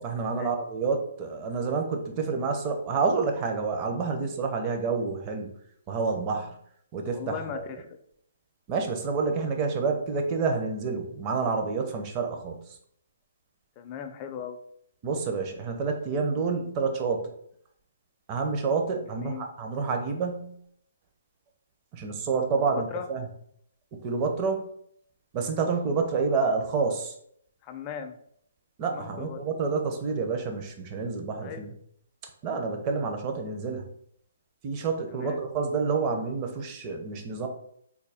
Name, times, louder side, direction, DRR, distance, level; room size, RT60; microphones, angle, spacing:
voice 1, 0.0-5.5 5.9-6.5 6.9-7.7 8.7-12.8 15.0-17.3 18.3-20.5 21.9-23.3 24.0-24.6 25.3-27.1 28.8-31.7 32.4-33.9 34.6-37.5, right 4 dB, 25° right, 3 dB, 0.5 m, -28 dB
voice 2, 7.1-7.9 13.8-14.6 19.0-19.5 22.7-23.1 27.6-28.2 28.8-29.4 31.4-31.7 35.1-35.4, left 8 dB, 25° left, 7 dB, 0.4 m, -38 dB
3.5 x 2.2 x 3.4 m, 0.68 s
hypercardioid pair, 155°, 0 cm